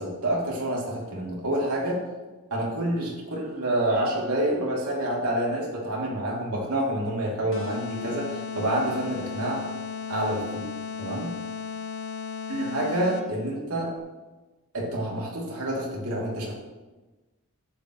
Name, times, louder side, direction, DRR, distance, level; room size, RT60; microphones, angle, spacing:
voice 1, 0.0-2.0 2.5-9.6 10.1-10.7 11.0-11.3 12.5-13.9 14.7-16.5, right 1 dB, 80° right, -3 dB, 3.1 m, -28 dB
Bell, 4.0-5.6, right 3 dB, 40° right, 1.4 m, -41 dB
sound 1, 7.5-13.5, left 6 dB, 55° left, 0.8 m, -35 dB
11.5 x 8.8 x 3.2 m, 1.2 s
head